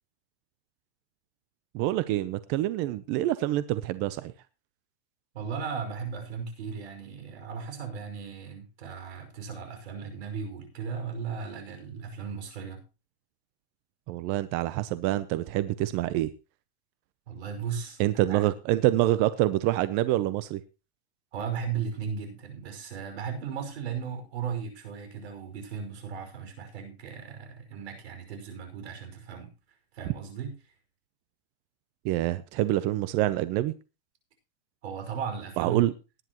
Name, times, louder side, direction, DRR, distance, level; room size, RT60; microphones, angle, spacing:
voice 1, 1.7-4.3 14.1-16.3 18.0-20.6 32.0-33.7 35.6-35.9, right 15 dB, 35° right, 14 dB, 0.7 m, -26 dB
voice 2, 5.3-12.8 17.3-18.0 18.3-18.5 21.3-29.5 29.9-30.5 34.8-35.9, right 6 dB, 80° right, 6 dB, 5.5 m, -36 dB
19.0 x 10.0 x 3.0 m, 0.30 s
supercardioid pair, 155°, 32 cm